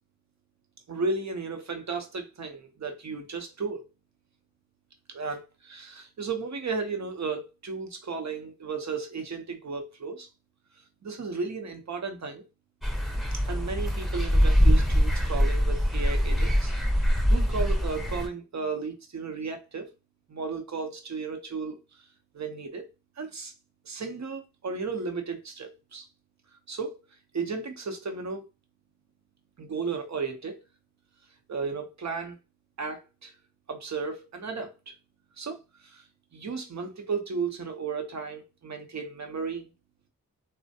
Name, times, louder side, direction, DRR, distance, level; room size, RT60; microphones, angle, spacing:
voice 1, 0.9-3.8 5.1-10.3 11.0-12.4 13.5-16.7 17.0-19.9 20.3-21.8 22.3-22.9 23.2-23.5 23.8-26.0 26.7-27.0 27.3-28.4 29.6-30.6 31.5-32.4 32.8-33.3 33.7-34.7 35.4-36.0 36.3-39.7, right 4 dB, 60° right, 0.7 m, -34 dB
sound 1, 12.8-18.3, equal, ahead, 0.7 m, -23 dB
3.2 x 2.1 x 2.7 m
cardioid pair, 55°, 32 cm